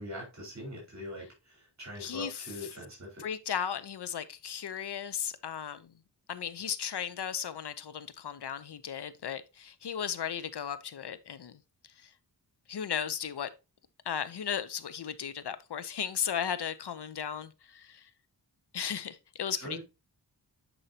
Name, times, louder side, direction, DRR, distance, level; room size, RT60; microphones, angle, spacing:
voice 1, 0.0-3.2 19.6-19.8, left 1 dB, 40° right, 4.5 m, -42 dB
voice 2, 2.0-2.4 3.2-5.9 6.3-11.6 12.0-12.1 12.7-13.5 14.1-18.1 18.7-19.8, left 8 dB, 70° left, 0.7 m, -36 dB
10.0 x 5.4 x 2.8 m
wide cardioid pair, 110°, 41 cm